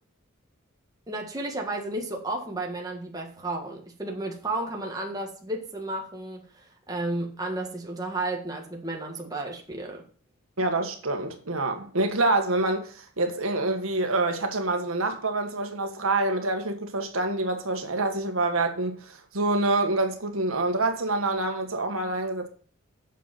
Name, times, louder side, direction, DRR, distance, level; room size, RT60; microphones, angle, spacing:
voice 1, 1.1-10.0, right 2 dB, 15° right, 1.7 m, -33 dB
voice 2, 10.6-22.5, right 2 dB, 70° right, 1.6 m, -26 dB
8.2 x 6.7 x 5.9 m
head